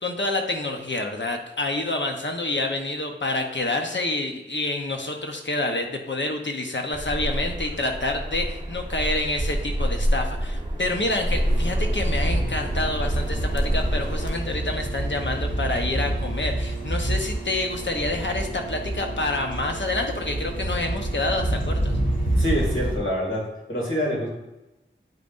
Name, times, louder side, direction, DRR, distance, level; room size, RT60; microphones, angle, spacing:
voice 1, 0.0-21.9, left 2 dB, 65° left, 3 dB, 0.9 m, -28 dB
sound 1, 6.9-14.3, equal, 20° right, 1.4 m, -27 dB
sound 2, 11.3-23.0, right 1 dB, 45° left, 2.2 m, -28 dB
voice 2, 22.4-24.3, equal, 85° left, -3 dB, 2.2 m, -26 dB
9.3 x 5.4 x 2.6 m, 0.97 s
wide cardioid pair, 45°, 20 cm